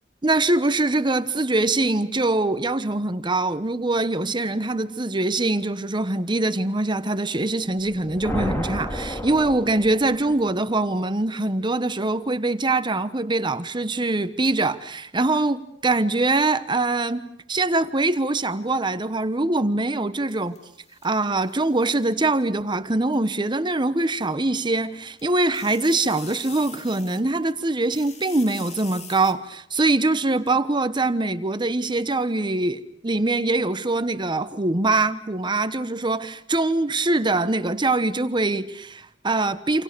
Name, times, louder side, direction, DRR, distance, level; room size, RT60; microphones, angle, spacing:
voice 1, 0.2-20.6 21.0-39.8, right 2 dB, 25° right, 1.1 m, -23 dB
sound 1, 7.8-10.4, equal, 15° left, 2.9 m, -31 dB
sound 2, 20.3-22.0 23.1-23.2 25.1-27.5 27.8-29.3, left 5 dB, 35° left, 2.7 m, -43 dB
28.5 x 27.5 x 6.8 m
head